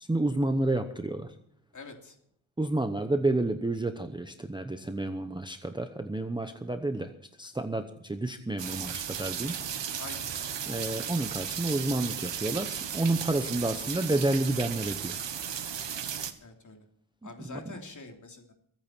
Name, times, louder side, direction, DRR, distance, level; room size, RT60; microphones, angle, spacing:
voice 1, 0.1-1.3 2.6-7.1 7.4-9.9 10.7-15.2 17.2-17.6, right 2 dB, 10° right, 7 dB, 0.8 m, -30 dB
voice 2, 1.7-2.1 10.0-10.3 13.5-13.6 16.4-16.8 17.2-18.5, left 3 dB, 40° left, 3 dB, 3.0 m, -45 dB
sound 1, 8.6-16.3, right 8 dB, 65° right, 1.5 m, -35 dB
23.0 x 8.9 x 4.5 m, 0.65 s
wide cardioid pair, 115°, 47 cm